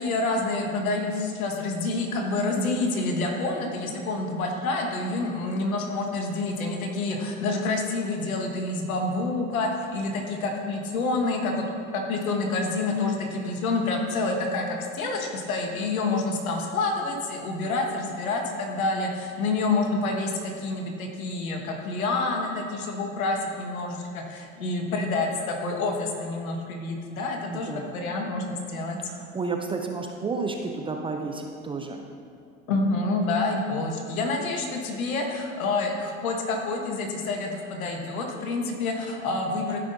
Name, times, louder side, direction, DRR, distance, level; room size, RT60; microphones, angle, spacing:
voice 1, 0.0-11.6 11.9-29.0 32.7-39.8, left 3 dB, 85° left, 1 dB, 1.5 m, -28 dB
voice 2, 27.5-27.9 29.0-32.1, right 4 dB, 15° right, 3 dB, 0.4 m, -31 dB
14.0 x 5.7 x 2.6 m, 2.4 s
hypercardioid pair, 100°, 42 cm